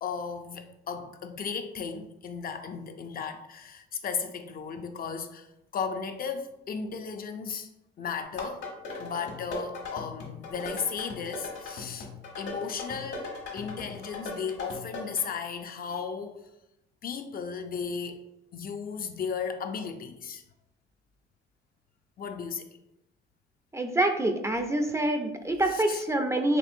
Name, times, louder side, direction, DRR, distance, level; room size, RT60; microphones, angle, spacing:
voice 1, 0.0-5.5 5.7-7.7 8.0-8.6 9.0-12.1 12.4-16.4 17.0-18.2 18.5-20.4 22.2-22.8 25.7-26.0, left 6 dB, 50° left, 6 dB, 0.4 m, -35 dB
sound 1, 8.4-15.2, left 3 dB, 70° left, 1.3 m, -39 dB
voice 2, 23.7-26.6, right 1 dB, 15° right, 5 dB, 0.4 m, -26 dB
4.3 x 2.9 x 2.6 m, 0.87 s
cardioid pair, 90°, 20 cm